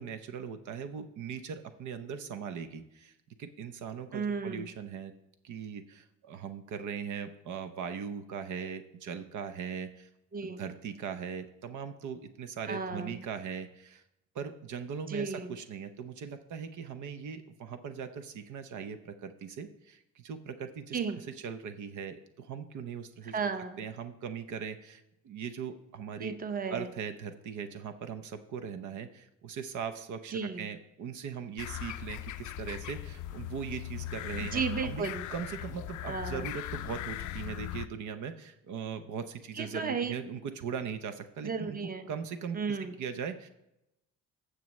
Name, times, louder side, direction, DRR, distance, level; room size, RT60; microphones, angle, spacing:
voice 1, 0.0-3.1 3.4-5.1 5.4-10.1 10.4-14.0 14.3-23.4 23.8-26.3 26.7-35.0 35.3-41.8 42.1-43.5, right 7 dB, 75° right, 8 dB, 0.8 m, -40 dB
voice 2, 4.1-4.7 10.3-10.6 12.7-13.3 15.1-15.5 20.9-21.2 23.2-23.8 26.2-26.9 30.3-30.7 34.4-35.2 36.1-36.4 39.5-40.2 41.4-42.1 42.5-42.9, right 5 dB, 30° right, 9 dB, 0.9 m, -34 dB
sound 1, 31.6-37.9, left 13 dB, 75° left, 0.4 m, -39 dB
15.0 x 6.3 x 3.2 m, 0.87 s
cardioid pair, 90°, 30 cm